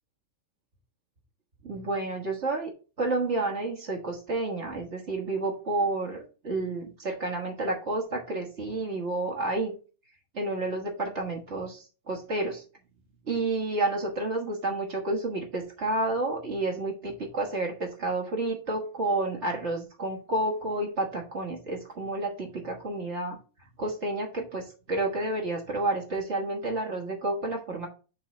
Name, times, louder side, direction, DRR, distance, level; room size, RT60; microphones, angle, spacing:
voice 1, 1.6-2.7 3.0-9.7 10.3-12.6 13.3-23.4 23.8-27.9, right 2 dB, 50° right, 0 dB, 0.8 m, -30 dB
7.4 x 3.1 x 5.5 m, 0.34 s
omnidirectional pair, 3.4 m